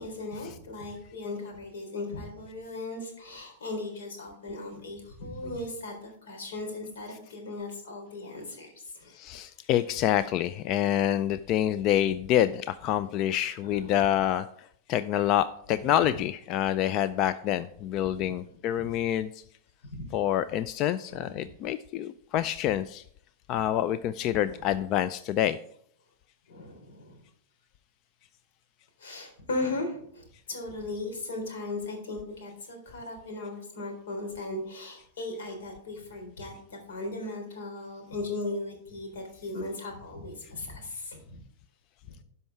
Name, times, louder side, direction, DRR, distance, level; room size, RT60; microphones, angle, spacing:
voice 1, 0.0-9.2 13.6-13.9 15.8-16.1 18.1-18.3 18.8-18.9 19.9-20.1 21.1-21.5 24.3-24.6 26.5-27.2 29.0-41.4 42.0-42.1, left 2 dB, 85° left, 2 dB, 3.7 m, -37 dB
voice 2, 9.1-19.4 20.1-23.0 23.5-25.6, left 11 dB, 45° left, 14 dB, 0.4 m, -27 dB
12.0 x 5.5 x 4.6 m, 0.65 s
hypercardioid pair, 130°, 0 cm